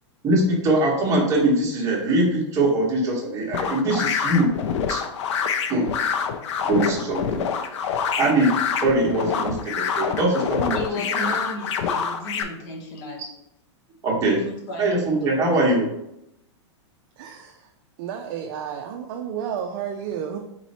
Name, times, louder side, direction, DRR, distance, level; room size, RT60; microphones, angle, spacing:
voice 1, 0.2-4.5 4.9-5.0 5.7-5.9 6.7-7.4 8.2-8.5 8.8-10.8 14.0-14.4 14.8-15.9, right 1 dB, 20° right, -3 dB, 1.3 m, -22 dB
sound 1, 3.5-12.4, left 7 dB, 70° left, 0.6 m, -26 dB
voice 2, 10.7-13.3 14.5-15.2, left 1 dB, 40° left, -1 dB, 1.2 m, -34 dB
voice 3, 17.2-17.7 18.0-20.4, right 8 dB, 45° right, 3 dB, 0.5 m, -31 dB
4.1 x 3.0 x 4.2 m, 0.81 s
supercardioid pair, 155°, 16 cm